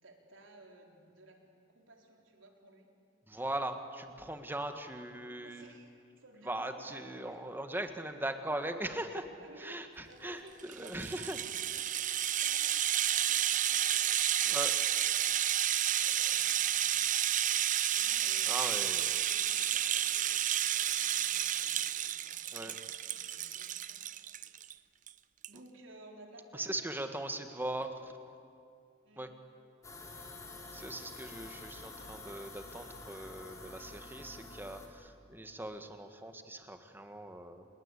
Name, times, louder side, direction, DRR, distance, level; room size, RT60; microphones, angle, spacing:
voice 1, 0.0-1.4 1.7-2.9 5.4-7.4 9.4-10.5 10.8-11.9 12.2-14.6 15.9-17.3 17.9-18.8 19.3-22.8 23.1-24.9 25.5-26.7 29.0-29.3, right 1 dB, 70° right, 2 dB, 4.1 m, -57 dB
voice 2, 3.3-5.7 6.5-9.3 9.6-11.4 11.7-11.8 14.4-14.8 18.5-19.1 22.5-22.7 26.5-28.1 29.2-29.3 30.7-37.7, right 1 dB, 10° right, 7 dB, 1.6 m, -40 dB
Rattle (instrument), 10.6-24.7 25.1-25.2 25.4-25.6, right 11 dB, 40° right, 0.6 m, -31 dB
sound 1, 29.8-34.9, left 2 dB, 15° left, 3.4 m, -48 dB
29.5 x 20.0 x 8.4 m, 2.5 s
head